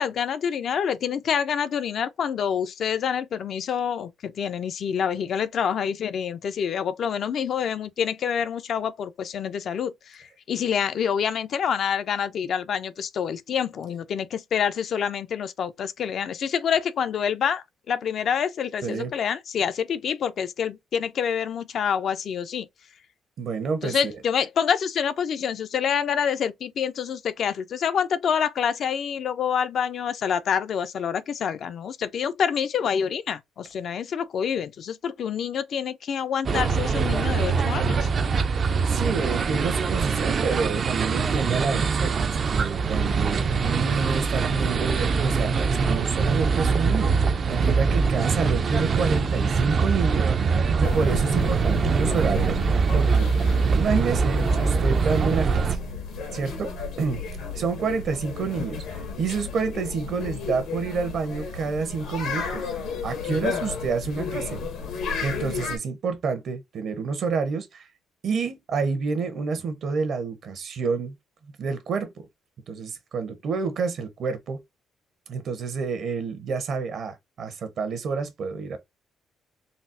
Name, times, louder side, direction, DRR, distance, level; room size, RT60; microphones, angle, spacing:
voice 1, 0.0-22.7 23.8-38.1, left 7 dB, 65° left, 0.4 m, -27 dB
voice 2, 23.4-24.0 38.9-52.6 52.9-53.3 53.7-55.8 56.3-57.2 57.5-62.6 63.0-64.6 65.2-67.9 68.2-71.2 71.4-72.3 72.7-74.6 75.3-78.8, right 5 dB, 65° right, 0.9 m, -29 dB
sound 1, 36.4-55.8, right 5 dB, 45° right, 0.4 m, -23 dB
sound 2, 50.8-65.8, left 5 dB, 85° left, 1.3 m, -33 dB
4.1 x 2.0 x 2.5 m
cardioid pair, 90°, 0 cm